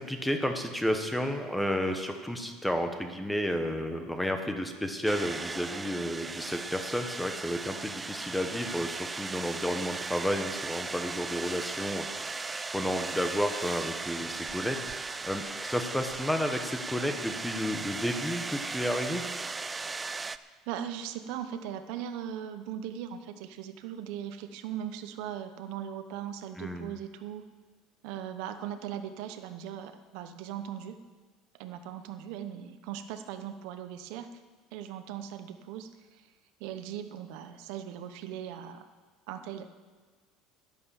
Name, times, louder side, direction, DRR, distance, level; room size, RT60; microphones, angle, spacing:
voice 1, 0.0-12.1 12.7-19.2 26.6-26.9, equal, 5° left, 5 dB, 1.0 m, -31 dB
sound 1, 5.0-20.4, right 3 dB, 15° right, 0.3 m, -37 dB
voice 2, 20.7-27.5 28.0-31.0 31.5-34.3 34.7-36.2 36.6-38.9 39.3-39.7, right 10 dB, 70° right, 9 dB, 0.9 m, -39 dB
11.0 x 11.0 x 7.1 m, 1.4 s
cardioid pair, 160°, 0 cm